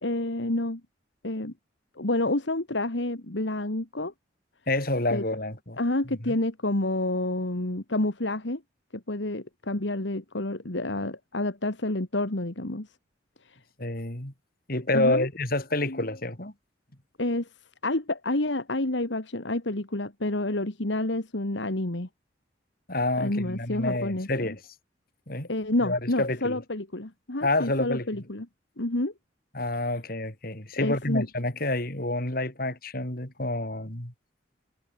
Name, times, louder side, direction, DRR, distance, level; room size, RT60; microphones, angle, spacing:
voice 1, 0.0-0.8 1.2-1.5 2.0-4.1 5.1-5.2 5.8-8.6 8.9-12.9 13.5-13.6 14.9-15.3 15.9-16.0 17.2-17.5 17.8-22.1 23.2-24.3 25.5-28.5 28.8-29.1 30.7-31.3, left 2 dB, 70° left, 2.1 m, -29 dB
voice 2, 4.7-5.8 6.3-6.4 13.8-14.3 14.7-16.5 22.9-24.6 25.3-25.5 25.8-26.6 27.4-28.1 29.5-34.1, left 2 dB, 50° left, 4.5 m, -28 dB
head